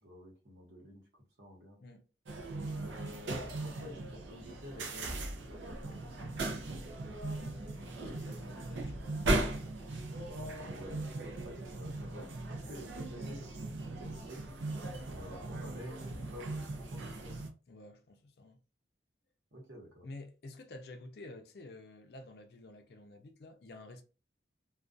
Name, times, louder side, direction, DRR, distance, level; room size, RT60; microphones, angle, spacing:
voice 1, 0.0-1.0 1.4-1.8 2.8-5.2 5.5-6.3 10.6-14.4 15.1-17.4 19.5-20.1, left 1 dB, 65° right, 1.0 m, -50 dB
sound 1, 2.3-17.5, right 2 dB, 80° right, 0.5 m, -38 dB
voice 2, 7.3-9.2 17.7-18.6 20.0-24.0, left 2 dB, 55° left, 0.4 m, -51 dB
2.3 x 2.2 x 2.5 m
head